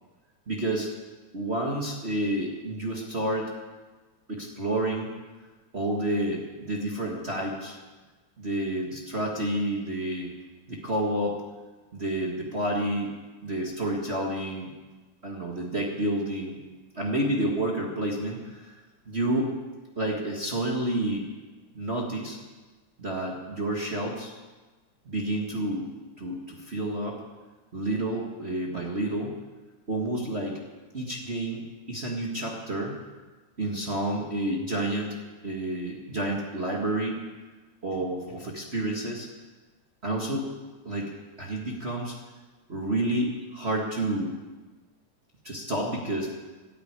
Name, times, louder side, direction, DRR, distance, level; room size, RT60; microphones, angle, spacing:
voice 1, 0.5-0.9 1.3-3.5 4.3-5.1 5.7-7.8 8.4-10.3 10.7-11.4 11.9-13.1 13.4-14.7 15.2-16.6 16.9-18.7 19.1-19.5 20.0-21.3 21.7-22.4 23.0-24.3 25.0-25.9 26.2-27.2 27.7-29.3 29.9-30.6 30.9-33.0 33.6-35.2 35.4-37.2 37.8-39.3 40.0-40.5 40.8-41.1 41.4-42.2 42.7-44.3 45.4-46.3, right 1 dB, 35° right, -2 dB, 1.1 m, -29 dB
12.5 x 9.2 x 9.5 m, 1.3 s
omnidirectional pair, 3.6 m